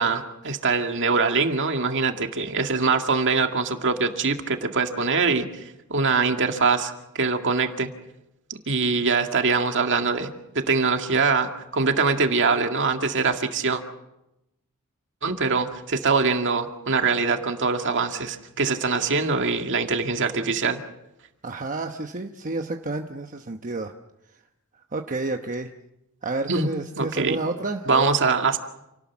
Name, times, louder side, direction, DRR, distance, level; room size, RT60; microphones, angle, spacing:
voice 1, 0.0-5.5 5.9-7.9 8.7-10.3 10.5-13.8 15.2-20.8 26.5-26.7 27.0-27.4 27.9-28.6, right 4 dB, 55° right, 5 dB, 2.0 m, -23 dB
voice 2, 21.4-23.9 24.3-24.4 24.9-25.7 26.2-28.3, right 2 dB, 35° right, 4 dB, 1.0 m, -30 dB
28.5 x 18.5 x 7.3 m, 0.90 s
head